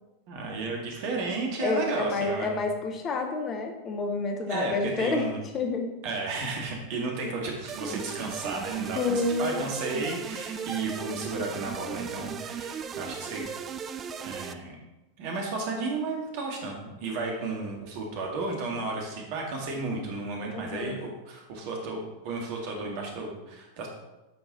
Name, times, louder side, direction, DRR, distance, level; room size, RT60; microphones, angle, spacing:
voice 1, 0.3-2.6 4.5-5.4 6.0-13.6 14.2-14.8 15.2-23.9, right 3 dB, 45° right, 0 dB, 2.1 m, -33 dB
voice 2, 1.6-5.3 5.5-5.9 8.9-9.7 20.5-21.0, left 3 dB, 25° left, 4 dB, 1.0 m, -29 dB
sound 1, 7.7-14.5, right 7 dB, 25° right, 0.5 m, -37 dB
8.6 x 5.9 x 4.2 m, 1.0 s
figure-of-eight pair, 90°, 0 cm